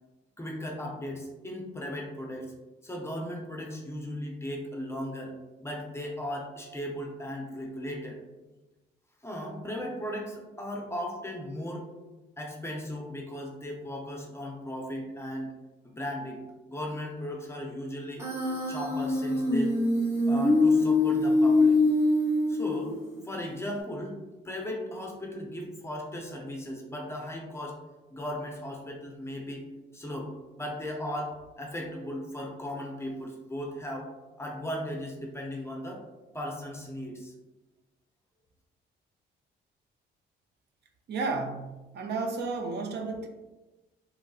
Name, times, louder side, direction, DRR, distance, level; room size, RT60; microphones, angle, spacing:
voice 1, 0.4-2.5 2.8-5.3 5.6-8.2 9.2-11.9 12.4-15.5 15.8-16.4 16.7-18.2 18.7-19.7 20.3-21.8 22.5-23.0 23.2-24.2 24.4-27.8 28.1-29.7 29.9-30.3 30.6-34.1 34.4-36.0 36.3-37.3, left 1 dB, 15° left, 0 dB, 0.6 m, -37 dB
Human voice, 18.2-23.2, left 2 dB, 15° right, 0.9 m, -24 dB
voice 2, 41.1-43.3, right 3 dB, 60° right, 4 dB, 0.5 m, -32 dB
3.1 x 2.6 x 2.3 m, 1.1 s
cardioid pair, 90°, 20 cm